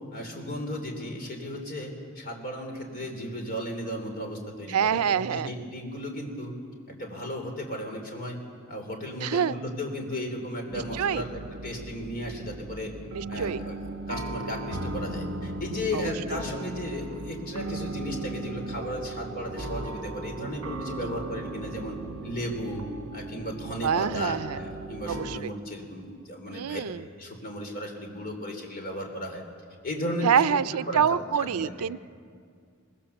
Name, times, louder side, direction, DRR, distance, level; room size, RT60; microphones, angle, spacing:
voice 1, 0.1-6.5 6.9-8.4 8.7-12.9 13.3-22.0 22.2-22.8 23.1-26.8 27.2-29.4 29.8-30.6 30.9-31.7, equal, 45° left, 3 dB, 3.5 m, -35 dB
voice 2, 4.7-5.5 9.2-9.6 10.7-11.2 13.1-13.6 15.9-16.1 21.0-21.1 23.8-24.6 25.1-25.5 26.5-27.0 30.2-32.1, right 7 dB, 85° right, 16 dB, 0.5 m, -26 dB
sound 1, 10.7-25.4, right 2 dB, 65° right, 1.3 m, -37 dB
24.0 x 19.5 x 7.1 m, 2.2 s
head